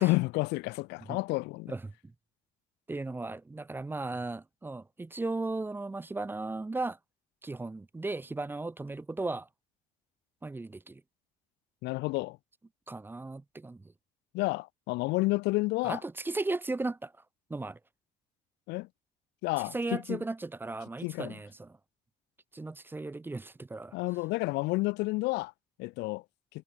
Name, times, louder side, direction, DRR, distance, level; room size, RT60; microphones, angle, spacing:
voice 1, 0.0-1.7 11.8-12.4 14.3-16.0 18.7-18.9 19.4-20.2 21.0-21.4 23.9-25.5 25.8-26.2, left 22 dB, 85° left, 0.4 m, -30 dB
voice 2, 2.9-7.0 7.4-9.5 10.4-11.0 12.9-13.8 15.8-17.1 17.5-17.8 19.7-21.8 22.5-23.9, right 2 dB, 10° right, 0.6 m, -36 dB
cardioid pair, 110°, 17 cm